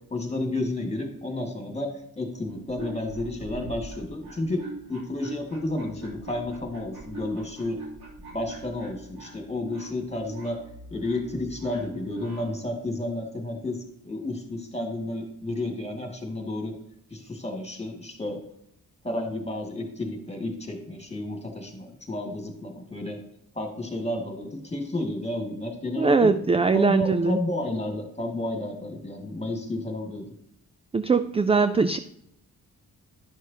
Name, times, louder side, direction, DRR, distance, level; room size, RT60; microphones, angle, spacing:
voice 1, 0.1-4.6 4.9-7.8 8.3-10.6 10.9-13.8 14.0-16.8 17.1-18.4 19.0-23.2 23.5-26.3 26.7-30.2, left 1 dB, 15° left, 2 dB, 2.1 m, -31 dB
sound 1, 2.4-12.6, right 2 dB, 90° right, 3.0 m, -43 dB
voice 2, 26.0-27.4 30.9-32.0, right 4 dB, 15° right, 11 dB, 0.3 m, -21 dB
11.0 x 6.5 x 2.8 m, 0.76 s
cardioid pair, 90°, 37 cm